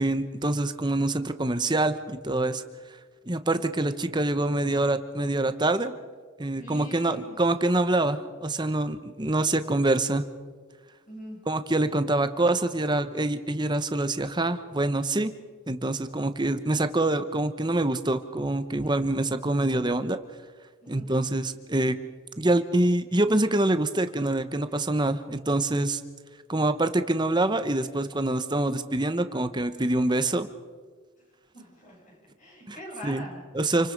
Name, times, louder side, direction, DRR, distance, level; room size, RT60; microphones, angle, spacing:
voice 1, 0.0-2.6 3.3-5.9 6.4-10.2 11.5-15.3 15.7-20.2 20.9-22.0 22.4-26.0 26.5-30.5 32.7-32.8 33.0-33.2 33.5-33.9, right 2 dB, 20° right, 10 dB, 1.0 m, -25 dB
voice 2, 6.5-7.4 11.1-11.4 18.8-19.2 20.8-21.1 31.5-33.4, equal, 35° left, -2 dB, 7.6 m, -44 dB
28.0 x 24.5 x 5.4 m, 1.5 s
head